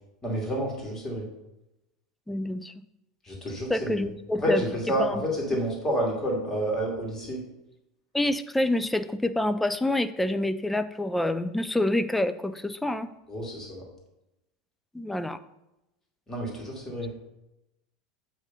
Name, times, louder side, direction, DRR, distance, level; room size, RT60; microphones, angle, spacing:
voice 1, 0.2-1.3 3.2-4.1 4.4-7.4 13.3-13.8 16.3-17.1, equal, 20° left, -2 dB, 2.4 m, -29 dB
voice 2, 2.3-2.8 3.7-4.6 5.0-5.2 8.1-13.1 14.9-15.4, left 1 dB, 5° left, 12 dB, 0.4 m, -27 dB
8.0 x 3.1 x 5.4 m, 0.91 s
hypercardioid pair, 90°, 2 cm